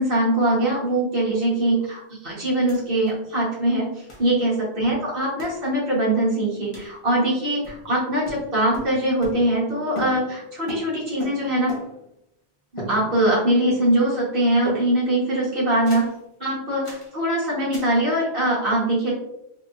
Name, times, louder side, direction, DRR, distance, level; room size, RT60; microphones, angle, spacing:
voice 1, 0.0-11.7 12.9-16.1 16.4-19.1, right 1 dB, 60° right, -6 dB, 1.7 m, -22 dB
sound 1, 2.7-2.8 3.1-3.2 4.1-4.3 5.4-5.6 6.7-7.0 7.6-8.0 8.2-9.7 9.9-12.1 12.8-13.4 13.7-14.2 14.7-15.2 15.8-16.2 16.8-17.1 17.7-18.0, equal, 30° left, 0.9 m, -38 dB
3.4 x 3.1 x 2.5 m, 0.82 s
omnidirectional pair, 1.1 m